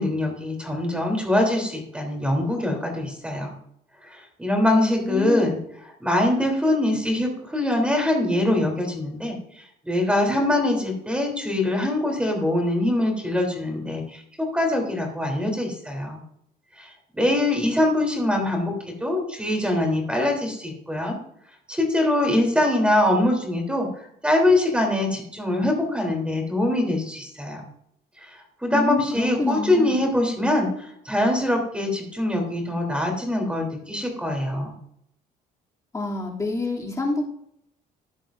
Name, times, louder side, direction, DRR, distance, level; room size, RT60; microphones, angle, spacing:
voice 1, 0.0-3.5 4.0-5.6 6.0-9.4 9.8-16.2 16.8-16.9 17.1-18.7 19.0-21.2 21.7-23.9 24.2-27.6 28.6-34.7, left 1 dB, 5° right, 2 dB, 3.3 m, -23 dB
voice 2, 4.6-5.5 28.7-30.0 35.9-37.2, left 2 dB, 20° left, -1 dB, 2.8 m, -27 dB
14.0 x 10.5 x 2.6 m, 0.71 s
cardioid pair, 110°, 17 cm